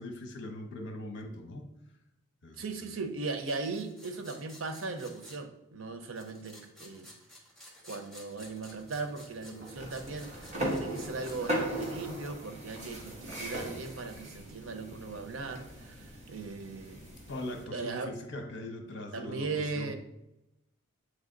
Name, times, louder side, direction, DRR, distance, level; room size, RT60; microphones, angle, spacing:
voice 1, 0.0-1.7 2.4-2.9 17.3-19.9, left 1 dB, 60° left, 4 dB, 0.9 m, -41 dB
voice 2, 2.6-7.1 7.8-17.1 17.6-18.1 19.1-19.9, right 3 dB, 75° right, 7 dB, 0.7 m, -38 dB
sound 1, 3.4-5.4 6.1-11.4 11.7-11.8 13.0-14.2, left 1 dB, ahead, 1.2 m, -54 dB
sound 2, 8.4-13.7, equal, 60° right, 2.2 m, -50 dB
sound 3, 9.7-17.7, right 1 dB, 35° right, 1.3 m, -38 dB
7.9 x 3.2 x 3.9 m, 0.88 s
head